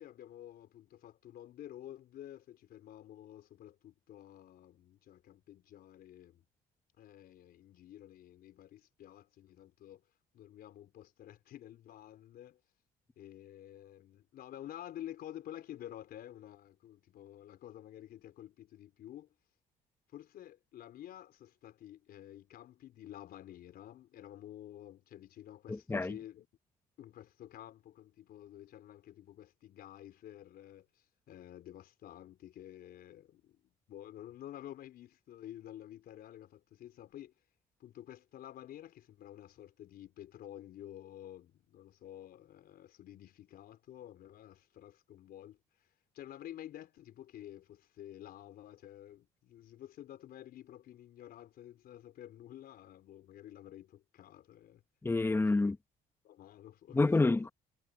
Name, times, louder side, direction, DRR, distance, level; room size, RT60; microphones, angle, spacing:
voice 1, 0.0-6.4 7.0-10.0 10.3-12.6 13.2-19.3 20.1-26.5 27.0-37.3 37.8-54.8 55.4-55.7 56.2-57.1, left 12 dB, 65° left, 4.3 m, -51 dB
voice 2, 25.7-26.1 55.0-55.7 56.9-57.5, left 3 dB, 15° left, 1.0 m, -28 dB
cardioid pair, 110°, 17 cm